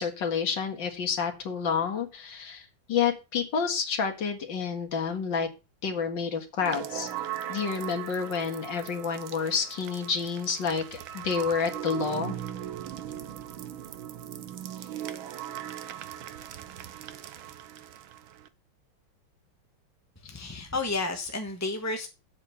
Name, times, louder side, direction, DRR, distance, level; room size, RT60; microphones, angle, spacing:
voice 1, 0.0-5.5 5.8-7.1 7.5-12.3, left 6 dB, 60° left, 2.5 m, -29 dB
sound 1, 6.6-18.5, right 11 dB, 80° right, 1.7 m, -39 dB
voice 2, 20.3-22.1, left 3 dB, 10° left, 0.8 m, -31 dB
8.1 x 7.7 x 6.9 m
omnidirectional pair, 2.3 m